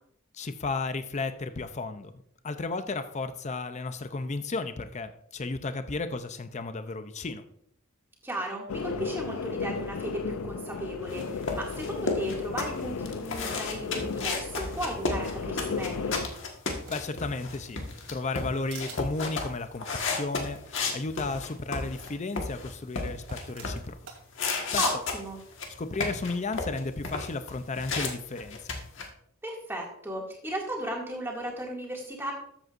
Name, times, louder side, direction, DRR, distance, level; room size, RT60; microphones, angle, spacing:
voice 1, 0.3-2.1 2.4-7.4 16.9-17.8 18.1-24.0 24.7-24.8 25.8-28.6, left 3 dB, 35° left, 10 dB, 0.5 m, -33 dB
voice 2, 8.2-16.2 24.8-25.4 29.4-32.3, right 1 dB, 10° right, -1 dB, 2.2 m, -35 dB
sound 1, 8.7-16.3, left 4 dB, 80° left, 0.5 m, -35 dB
sound 2, 11.1-22.1 22.4-23.9 24.3-28.1 28.4-29.1, left 4 dB, 60° left, 1.6 m, -32 dB
sound 3, 16.5-17.3 17.7-18.4 18.7-19.0 20.5-20.6 20.8-20.9 22.0-22.1 23.1-24.2, right 6 dB, 85° right, 2.7 m, -47 dB
13.5 x 7.9 x 2.6 m, 0.70 s
head